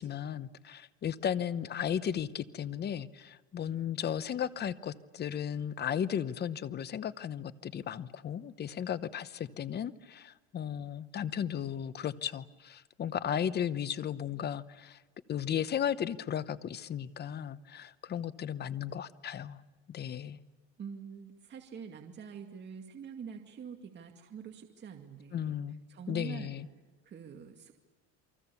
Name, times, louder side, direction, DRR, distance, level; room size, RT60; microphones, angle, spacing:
voice 1, 0.0-15.0 15.3-19.6 19.9-20.4 25.3-25.8 26.1-26.7, left 9 dB, 30° left, 15 dB, 0.9 m, -35 dB
voice 2, 20.8-25.5 25.9-26.6 27.0-27.7, right 7 dB, 35° right, 3 dB, 2.2 m, -45 dB
28.5 x 24.0 x 7.1 m, 1.2 s
cardioid pair, 135°, 33 cm